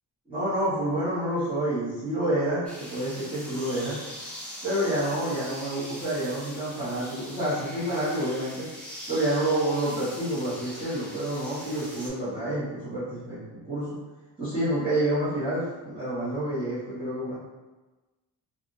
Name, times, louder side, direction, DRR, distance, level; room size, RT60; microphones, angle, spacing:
voice 1, 0.3-4.0 4.6-8.6 9.1-14.0 14.4-17.4, right 1 dB, 15° right, -14 dB, 1.2 m, -28 dB
sound 1, 2.6-12.1, equal, 5° left, 0.8 m, -42 dB
3.4 x 2.5 x 2.5 m, 1.2 s
cardioid pair, 115°, 40 cm